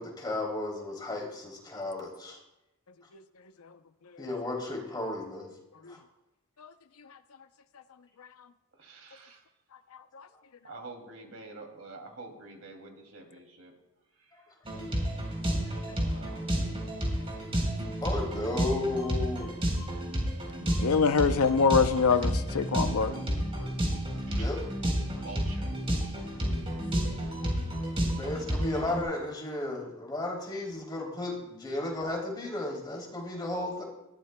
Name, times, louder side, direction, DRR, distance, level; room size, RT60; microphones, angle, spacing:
voice 1, 0.0-2.4 4.2-5.5 5.9-6.0 18.0-19.5 24.2-24.6 28.1-33.8, left 2 dB, 20° left, -2 dB, 3.0 m, -34 dB
voice 2, 8.8-9.4 10.6-13.7 16.1-16.9 24.3-24.6 25.2-25.7, right 3 dB, 70° right, 2 dB, 2.6 m, -47 dB
sound 1, 14.6-29.0, equal, 25° right, 3.8 m, -31 dB
voice 3, 20.6-23.3, left 5 dB, 85° left, 11 dB, 0.6 m, -25 dB
20.0 x 15.0 x 2.2 m, 0.94 s
head